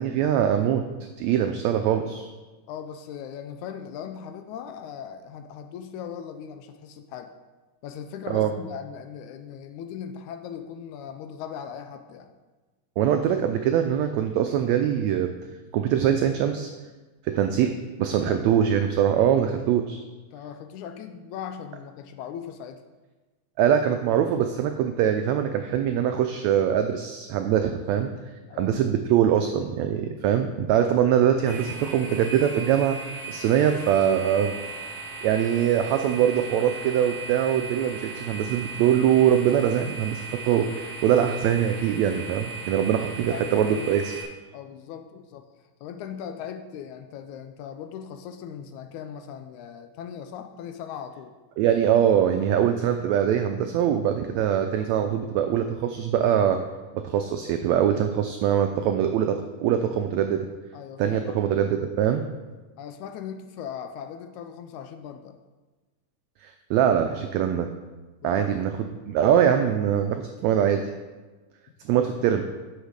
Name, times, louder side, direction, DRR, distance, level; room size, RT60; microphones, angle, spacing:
voice 1, 0.0-2.3 8.3-8.5 13.0-15.3 15.7-16.7 17.2-17.7 18.0-20.0 23.6-33.0 33.3-34.9 35.2-44.1 51.6-56.6 56.9-60.5 61.0-62.2 66.4-67.7 68.2-70.8 71.8-72.4, right 9 dB, 90° right, 7 dB, 1.5 m, -23 dB
voice 2, 2.7-7.3 7.8-12.3 18.2-18.5 20.3-22.8 28.5-28.8 30.7-30.9 43.2-44.0 44.5-45.5 45.8-51.3 60.7-61.4 62.1-62.2 62.8-65.4 68.2-68.5, left 8 dB, 80° left, 7 dB, 1.8 m, -39 dB
sound 1, 31.4-44.2, right 3 dB, 5° left, 0.3 m, -37 dB
8.0 x 6.5 x 5.0 m, 1.2 s
omnidirectional pair, 3.7 m